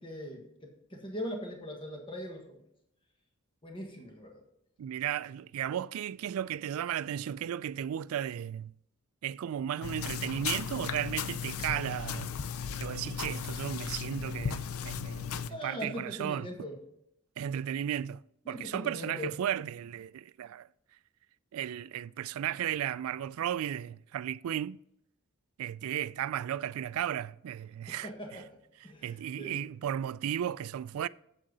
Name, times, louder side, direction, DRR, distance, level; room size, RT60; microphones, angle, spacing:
voice 1, 0.0-2.6 3.6-4.4 15.5-16.8 18.4-19.3 27.9-28.5 28.8-29.6, left 1 dB, 25° left, 1.5 m, -41 dB
voice 2, 4.8-8.7 9.2-12.3 12.8-16.5 17.4-18.2 18.5-20.7 21.5-24.8 25.6-28.4 29.0-31.1, right 10 dB, 80° right, 0.3 m, -35 dB
sound 1, 9.8-15.5, left 7 dB, 85° left, 0.5 m, -36 dB
8.6 x 7.6 x 3.9 m
head